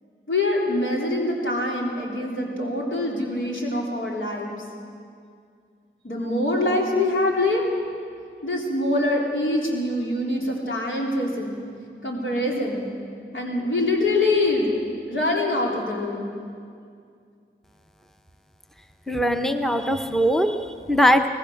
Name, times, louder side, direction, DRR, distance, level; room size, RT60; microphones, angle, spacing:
voice 1, 0.3-4.5 6.0-7.7 8.4-11.6 12.0-12.9 13.3-14.7 15.1-16.3, left 2 dB, 85° left, -2 dB, 3.8 m, -24 dB
voice 2, 19.1-21.3, equal, ahead, 6 dB, 0.9 m, -21 dB
23.5 x 18.5 x 6.5 m, 2.3 s
wide cardioid pair, 65°, 20 cm